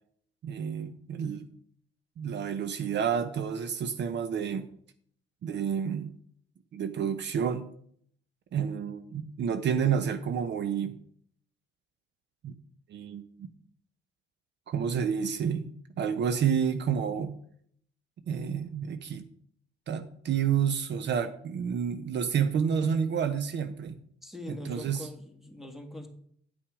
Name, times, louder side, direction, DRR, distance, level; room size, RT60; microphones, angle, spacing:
voice 1, 0.4-1.5 2.2-4.7 5.4-6.1 6.7-7.7 8.5-11.0 12.4-12.5 12.9-13.5 14.7-17.4 18.3-19.2 19.9-24.0 24.5-25.1, right 7 dB, 65° right, 10 dB, 0.8 m, -29 dB
voice 2, 24.2-26.1, left 1 dB, ahead, 4 dB, 1.8 m, -42 dB
9.8 x 5.9 x 4.9 m, 0.63 s
cardioid pair, 90°, 20 cm